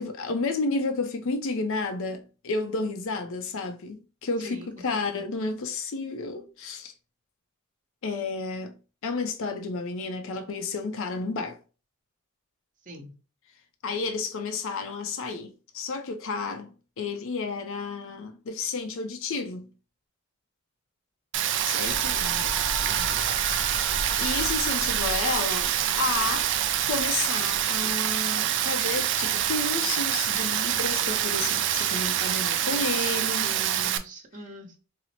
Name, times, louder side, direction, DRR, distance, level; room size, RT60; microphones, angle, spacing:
voice 1, 0.0-6.9 8.0-8.8 9.0-11.6 13.8-19.7 21.6-22.2 24.2-26.5 26.8-33.5, left 3 dB, 65° left, 0.5 m, -31 dB
voice 2, 4.4-5.2 12.8-13.1 22.1-22.5 22.8-23.2 32.6-32.8 33.2-34.7, equal, 40° right, 0.9 m, -44 dB
Rain, 21.3-34.0, right 11 dB, 60° right, 0.4 m, -26 dB
sound 1, 21.8-27.6 28.8-29.3 31.1-31.2, equal, 20° left, 0.6 m, -37 dB
4.1 x 2.0 x 2.9 m
head